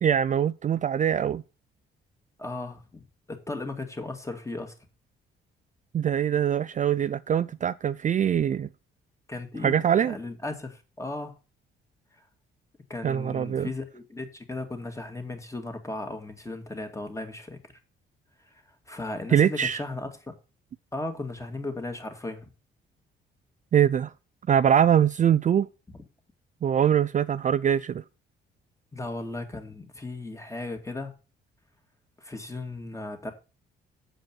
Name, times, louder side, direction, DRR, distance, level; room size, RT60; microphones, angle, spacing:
voice 1, 0.0-1.4 5.9-8.7 9.6-10.2 13.0-13.7 19.3-19.8 23.7-24.1 24.5-25.7 26.6-28.0, right 9 dB, 40° right, 0.4 m, -23 dB
voice 2, 2.4-4.7 9.3-11.3 12.9-17.7 18.5-18.6 18.9-20.3 20.9-22.5 28.9-31.1 32.2-33.3, left 2 dB, 15° left, 2.2 m, -36 dB
7.6 x 5.1 x 7.4 m
cardioid pair, 90°, 20 cm